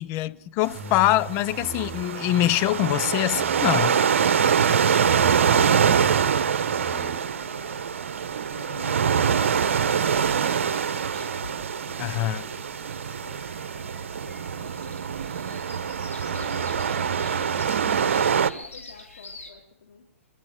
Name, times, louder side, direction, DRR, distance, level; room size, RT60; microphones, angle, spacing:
voice 1, 0.0-4.0 12.0-12.4, left 15 dB, 30° left, 0.7 m, -24 dB
sound 1, 0.6-18.5, right 7 dB, 65° right, 1.1 m, -24 dB
sound 2, 0.7-3.8 4.2-7.2, right 4 dB, 20° right, 6.9 m, -39 dB
sound 3, 4.6-19.5, left 2 dB, 90° left, 5.4 m, -48 dB
voice 2, 5.6-7.7 8.5-15.6 16.3-20.3, left 6 dB, 65° left, 4.1 m, -49 dB
28.5 x 13.0 x 8.1 m
figure-of-eight pair, 115°, 7 cm